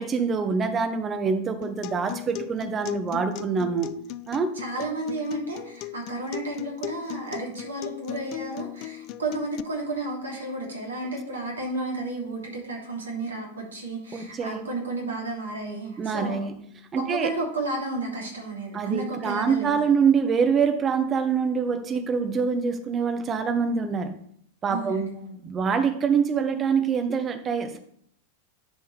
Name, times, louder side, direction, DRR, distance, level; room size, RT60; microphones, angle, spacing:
voice 1, 0.0-3.9 4.3-4.5 14.1-14.7 16.0-16.6 16.9-17.3 18.7-24.1 24.6-25.2 25.4-27.8, right 6 dB, 25° right, 8 dB, 1.1 m, -25 dB
Acoustic guitar, 1.6-9.6, left 16 dB, 40° left, 0.4 m, -38 dB
voice 2, 4.6-16.5 17.0-19.7 24.7-25.4, right 2 dB, 70° right, -1 dB, 2.9 m, -32 dB
11.0 x 6.1 x 3.3 m, 0.66 s
figure-of-eight pair, 90°, 0 cm